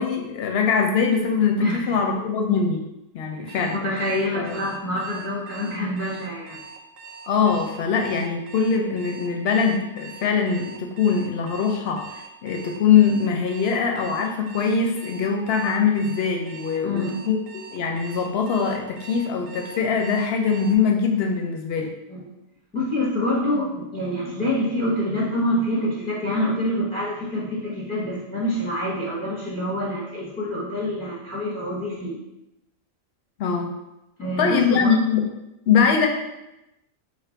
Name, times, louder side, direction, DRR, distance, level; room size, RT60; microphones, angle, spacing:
voice 1, 0.0-2.8 3.1-3.8 4.4-4.5 7.3-21.9 33.4-33.7 34.4-35.2 35.7-36.1, left 6 dB, 65° left, 2 dB, 0.7 m, -22 dB
voice 2, 1.6-2.0 3.4-3.5 3.7-6.6 16.8-17.2 22.1-22.2 22.7-32.2 34.2-34.9, left 1 dB, 5° left, -6 dB, 0.6 m, -26 dB
Alarm, 3.5-20.8, right 5 dB, 85° right, 1.0 m, -43 dB
3.1 x 2.5 x 4.3 m, 0.91 s
omnidirectional pair, 1.4 m